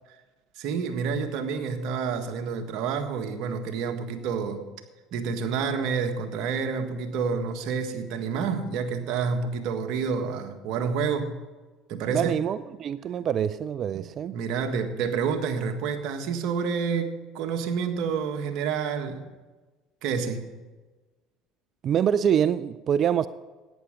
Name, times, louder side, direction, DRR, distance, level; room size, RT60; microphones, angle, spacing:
voice 1, 0.6-4.6 5.1-11.3 11.9-12.4 13.9-14.1 14.3-19.2 20.0-20.4, right 6 dB, 65° right, 1.6 m, -29 dB
voice 2, 12.1-14.4 21.8-23.3, right 9 dB, 50° right, 0.4 m, -25 dB
14.0 x 9.8 x 5.2 m
supercardioid pair, 85°, 0 cm